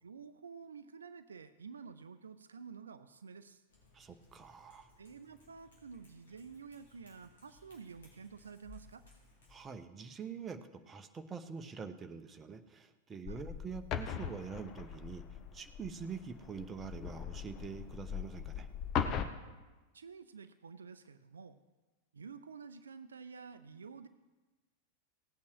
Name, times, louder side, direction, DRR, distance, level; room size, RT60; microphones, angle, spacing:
voice 1, 0.0-3.6 5.0-9.0 13.3-13.5 19.9-21.6 22.1-24.1, right 5 dB, 70° right, 11 dB, 0.5 m, -50 dB
Cat, 3.7-9.6, left 3 dB, 65° left, 4.0 m, -62 dB
voice 2, 3.9-4.9 9.5-10.6 10.9-15.2 15.5-18.7, right 6 dB, 20° right, 7 dB, 0.9 m, -45 dB
sound 1, 13.2-19.3, left 8 dB, 35° left, 0.9 m, -40 dB
17.5 x 8.5 x 4.8 m, 1.2 s
figure-of-eight pair, 90°, 0 cm